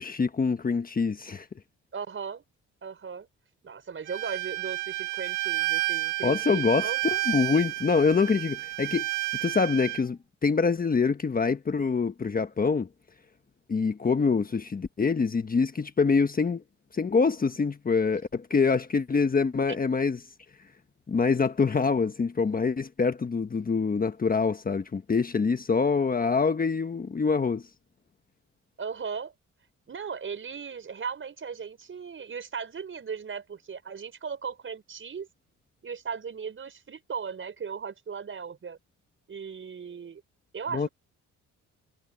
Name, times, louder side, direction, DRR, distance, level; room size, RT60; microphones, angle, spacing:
voice 1, 0.0-1.5 6.2-9.1 9.4-12.9 13.7-16.6 16.9-20.2 21.1-27.6 40.7-40.9, left 5 dB, 30° left, 1.3 m, -25 dB
voice 2, 1.9-2.4 2.8-3.3 3.6-7.0 28.8-29.3 29.9-35.3 35.8-38.8 39.3-40.2 40.5-40.9, right 6 dB, 40° right, 5.4 m, -37 dB
Bowed string instrument, 4.1-10.0, right 19 dB, 85° right, 1.4 m, -31 dB
cardioid pair, 90°, 30 cm